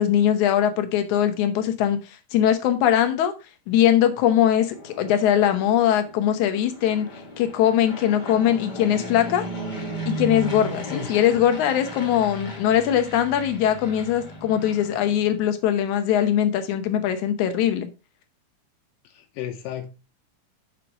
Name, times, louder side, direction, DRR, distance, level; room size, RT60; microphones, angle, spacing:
voice 1, 0.0-2.0 2.3-3.3 3.7-7.1 7.4-9.5 10.1-17.9, left 10 dB, 70° left, 7 dB, 2.3 m, -21 dB
Fixed-wing aircraft airplane, 4.4-15.5, right 1 dB, 25° left, 0.9 m, -36 dB
voice 2, 10.9-11.4 19.0-19.9, left 9 dB, 90° left, 3 dB, 2.6 m, -34 dB
6.2 x 5.7 x 4.7 m, 0.29 s
omnidirectional pair, 3.7 m